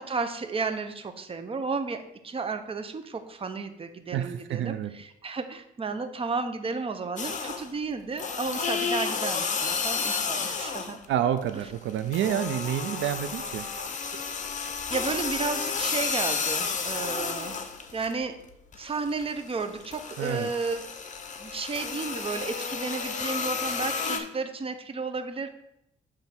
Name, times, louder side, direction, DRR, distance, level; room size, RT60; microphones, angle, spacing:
voice 1, 0.0-11.0 14.9-17.6 17.9-18.4 18.7-20.8 21.4-25.5, right 4 dB, 30° right, 8 dB, 0.7 m, -33 dB
voice 2, 4.1-4.9 11.1-13.6 20.2-20.5, right 10 dB, 75° right, 10 dB, 0.5 m, -28 dB
sound 1, 7.2-7.8 8.2-11.1 11.4-18.1 18.5-24.2, left 5 dB, 40° left, 0.9 m, -31 dB
7.2 x 3.4 x 5.9 m, 0.81 s
cardioid pair, 90°, 20 cm